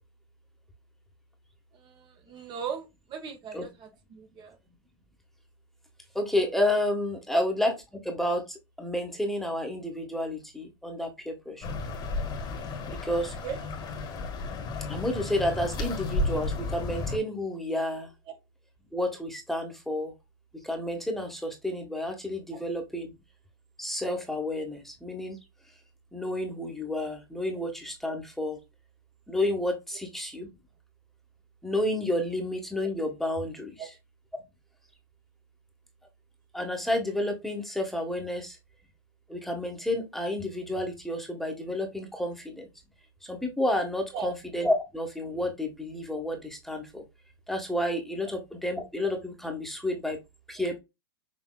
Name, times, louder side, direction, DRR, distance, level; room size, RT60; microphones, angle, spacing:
voice 1, 1.8-4.6 7.3-7.4 13.4-13.7 33.8-33.9 44.1-44.3, right 7 dB, 35° right, 1.3 m, -38 dB
voice 2, 6.1-7.7 8.0-11.8 12.9-13.3 14.9-18.1 18.9-20.1 20.6-23.1 23.8-25.4 26.1-28.6 29.3-30.5 31.6-33.9 36.5-38.6 39.3-42.7 43.2-47.0 47.5-50.2 50.5-50.8, left 1 dB, ahead, 1.4 m, -30 dB
sound 1, 11.6-17.2, left 2 dB, 35° left, 1.6 m, -33 dB
6.4 x 3.3 x 2.3 m
hypercardioid pair, 110°, 13 cm